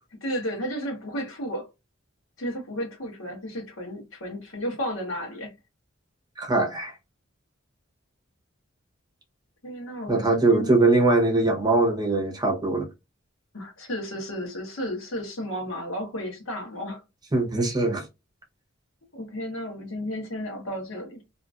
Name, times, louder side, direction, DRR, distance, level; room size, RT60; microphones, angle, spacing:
voice 1, 0.2-1.7 2.4-5.5 9.6-10.7 13.5-17.0 19.1-21.2, equal, 90° left, 1.2 m, -33 dB
voice 2, 6.4-6.9 10.1-12.9 17.3-18.1, right 2 dB, 20° right, 0.8 m, -21 dB
2.8 x 2.5 x 2.3 m
head